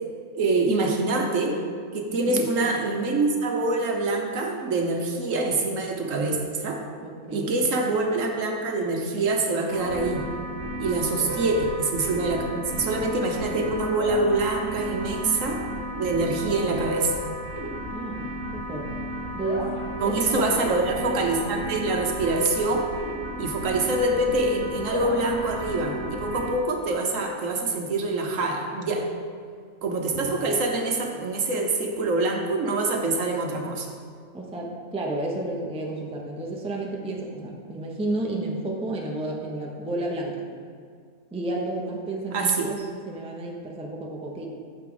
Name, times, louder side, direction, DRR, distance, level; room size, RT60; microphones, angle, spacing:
voice 1, 0.3-1.6 1.9-6.8 7.3-10.2 10.8-12.5 12.7-15.6 15.9-17.1 20.0-22.9 23.4-29.1 29.8-33.9 42.3-42.7, right 2 dB, 60° right, 2 dB, 1.2 m, -25 dB
voice 2, 2.1-2.4 7.0-7.5 11.2-11.5 17.9-18.9 19.3-20.7 34.3-40.5 41.3-42.8 43.1-44.5, right 2 dB, 5° right, -1 dB, 0.6 m, -31 dB
sound 1, 9.7-26.5, equal, 45° right, 1.6 m, -33 dB
9.2 x 6.7 x 3.8 m, 2.1 s
omnidirectional pair, 1.6 m